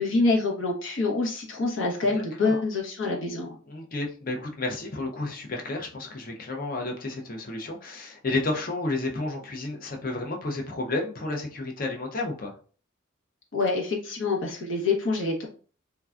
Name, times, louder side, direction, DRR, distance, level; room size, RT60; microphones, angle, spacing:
voice 1, 0.0-3.6 13.5-15.5, left 3 dB, 75° left, 0 dB, 0.9 m, -26 dB
voice 2, 2.0-2.6 3.7-12.5, left 2 dB, 45° left, 2 dB, 0.5 m, -31 dB
3.3 x 2.2 x 2.4 m, 0.40 s
head